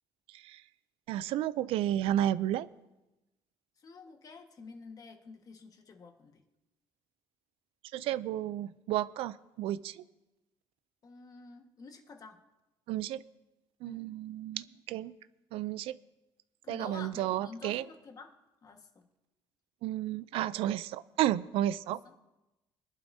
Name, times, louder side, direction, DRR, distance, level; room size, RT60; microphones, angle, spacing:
voice 1, 0.3-0.6 1.1-2.7 7.9-10.0 12.9-13.2 13.8-15.2 15.5-16.0 16.7-17.8 19.8-22.0, right 12 dB, 80° right, 17 dB, 0.4 m, -32 dB
voice 2, 3.8-6.4 11.0-12.4 13.8-14.1 16.6-18.3 18.6-19.1 21.9-22.1, left 4 dB, 40° left, 4 dB, 1.5 m, -49 dB
22.0 x 11.5 x 2.7 m, 0.99 s
cardioid pair, 105°, 10 cm